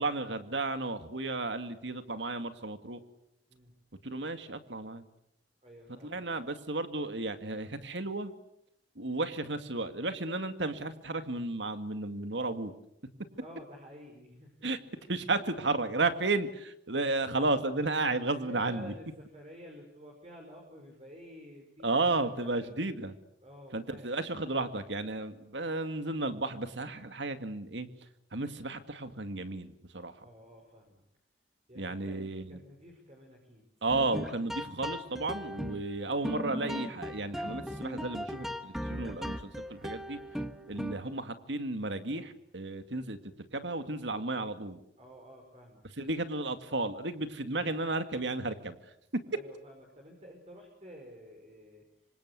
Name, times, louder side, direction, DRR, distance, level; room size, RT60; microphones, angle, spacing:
voice 1, 0.0-3.0 4.0-5.0 6.0-8.3 9.0-12.7 14.6-14.8 15.1-18.9 21.8-23.1 23.7-27.9 28.3-30.3 31.7-32.6 33.8-40.2 40.7-44.8 46.0-48.8, right 2 dB, 85° right, 9 dB, 2.2 m, -33 dB
voice 2, 5.6-6.2 13.4-14.6 18.4-22.8 23.4-24.1 30.2-31.0 31.7-32.2 32.5-33.7 40.5-40.8 45.0-45.9 49.3-51.8, equal, 35° right, 0 dB, 5.2 m, -51 dB
sound 1, 33.9-41.2, equal, ahead, 1.4 m, -38 dB
26.5 x 26.0 x 8.2 m, 0.78 s
head